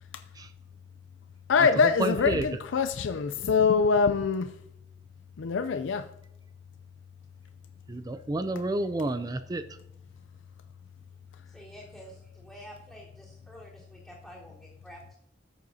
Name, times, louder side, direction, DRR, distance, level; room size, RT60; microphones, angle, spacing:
voice 1, 1.5-4.4 5.4-6.1, left 5 dB, 90° left, 0.4 m, -24 dB
voice 2, 2.0-2.4 7.9-9.6, right 2 dB, 20° right, 0.3 m, -30 dB
voice 3, 11.5-15.2, equal, ahead, 3.6 m, -49 dB
14.0 x 7.7 x 2.7 m
head